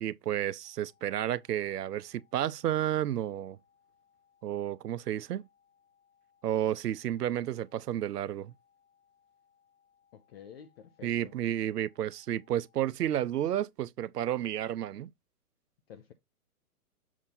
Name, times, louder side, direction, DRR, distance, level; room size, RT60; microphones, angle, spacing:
voice 1, 0.0-3.6 4.4-5.4 6.4-8.5 11.0-15.1, right 11 dB, 85° right, 0.6 m, -31 dB
sound 1, 0.6-12.8, left 7 dB, 20° right, 1.0 m, -70 dB
voice 2, 10.1-11.3 15.9-16.1, left 8 dB, 40° left, 0.7 m, -50 dB
7.2 x 2.7 x 5.7 m
hypercardioid pair, 140°, 46 cm